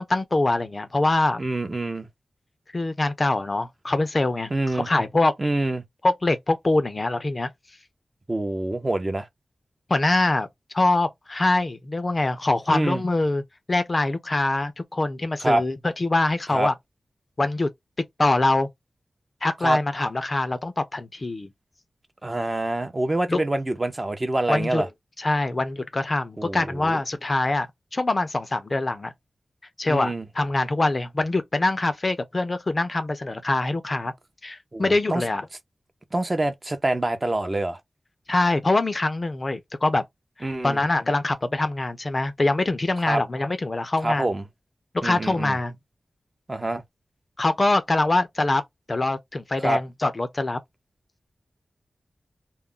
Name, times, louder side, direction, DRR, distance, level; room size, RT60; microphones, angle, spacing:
voice 1, 0.0-1.4 2.7-5.3 6.0-7.5 9.9-10.5 10.7-13.4 13.7-16.7 17.4-17.7 18.2-18.7 19.4-21.5 23.3-23.4 24.5-24.8 25.2-27.7 27.9-29.1 29.8-34.1 34.4-35.5 38.3-40.0 40.4-44.3 45.0-45.8 47.4-48.6 48.9-50.6, left 2 dB, 35° left, 0.5 m, -24 dB
voice 2, 1.4-2.1 4.5-4.9 5.4-5.8 8.3-9.3 12.7-13.0 15.4-15.6 16.5-16.7 19.6-19.8 22.2-24.9 26.4-27.0 29.9-30.3 34.7-35.2 36.1-37.8 40.4-40.8 43.0-43.2 44.0-44.4 45.0-45.6 46.5-46.8 49.6-49.8, right 2 dB, 30° right, 0.5 m, -26 dB
2.3 x 2.0 x 3.6 m
wide cardioid pair, 100°, 0 cm